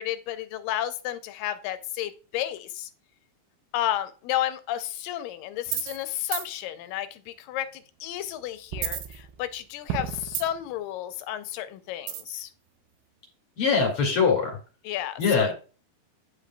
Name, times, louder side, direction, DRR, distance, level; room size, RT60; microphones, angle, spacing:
voice 1, 0.0-2.9 3.7-12.5 14.8-15.5, left 12 dB, 85° left, 11 dB, 2.3 m, -32 dB
sound 1, 5.7-6.0 6.3-6.5 8.7-9.6 9.9-10.7 12.1-12.4, right 11 dB, 85° right, 2.3 m, -31 dB
voice 2, 13.6-14.6 15.2-15.5, left 5 dB, 45° left, 0 dB, 2.9 m, -22 dB
10.5 x 5.0 x 2.2 m, 0.36 s
omnidirectional pair, 3.9 m